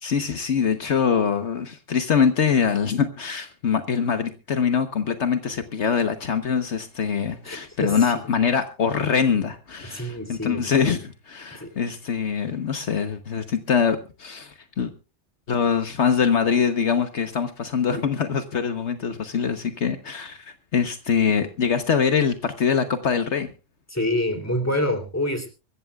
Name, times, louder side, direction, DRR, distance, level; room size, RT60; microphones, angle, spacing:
voice 1, 0.0-14.9 15.5-23.5, left 6 dB, 70° left, 1.4 m, -23 dB
voice 2, 7.5-8.1 9.9-10.6 11.6-11.7 23.9-25.5, left 1 dB, 15° left, 3.1 m, -26 dB
25.0 x 14.0 x 2.4 m
omnidirectional pair, 1.2 m